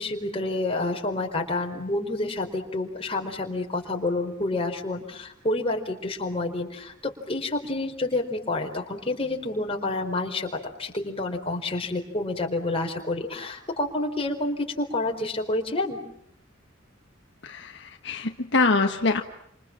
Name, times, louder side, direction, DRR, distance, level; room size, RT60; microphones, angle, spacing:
voice 1, 0.0-16.0, left 2 dB, 30° left, 2 dB, 4.6 m, -29 dB
voice 2, 17.4-19.2, left 3 dB, 65° left, 4 dB, 1.5 m, -24 dB
29.5 x 27.0 x 7.5 m, 0.71 s
head